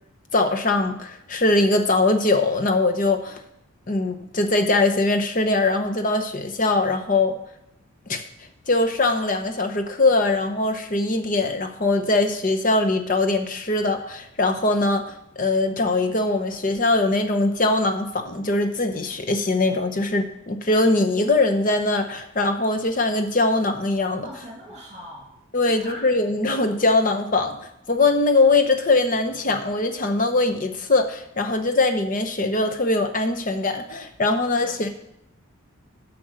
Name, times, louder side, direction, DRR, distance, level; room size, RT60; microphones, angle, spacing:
voice 1, 0.3-3.4 3.9-7.3 8.1-8.2 8.7-15.0 15.4-24.3 25.5-27.6 27.9-34.9, left 2 dB, 40° left, 6 dB, 0.8 m, -21 dB
voice 2, 24.2-25.3 25.6-26.1 34.6-34.9, right 1 dB, 30° right, -3 dB, 2.3 m, -41 dB
7.7 x 6.1 x 6.5 m, 0.80 s
head